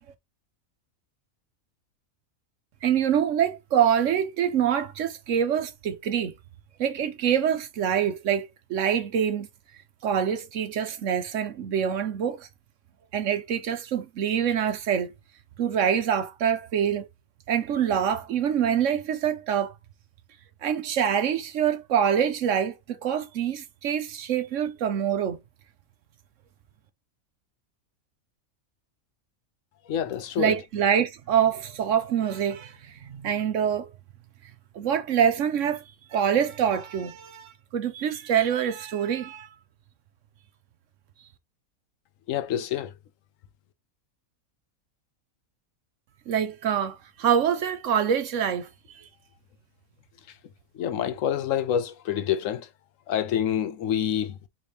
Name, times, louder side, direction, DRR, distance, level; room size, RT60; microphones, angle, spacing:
voice 1, 2.8-6.3 6.8-9.5 10.0-12.5 13.1-15.1 15.6-17.1 17.5-19.7 20.6-25.4 30.4-33.9 34.7-35.8 36.1-39.5 46.3-48.7 48.9-49.0, right 8 dB, 65° right, 1.0 m, -25 dB
voice 2, 29.9-30.5 42.3-42.9 50.8-52.7 53.1-54.4, left 9 dB, 70° left, 1.0 m, -27 dB
5.0 x 3.5 x 2.8 m
omnidirectional pair, 1.5 m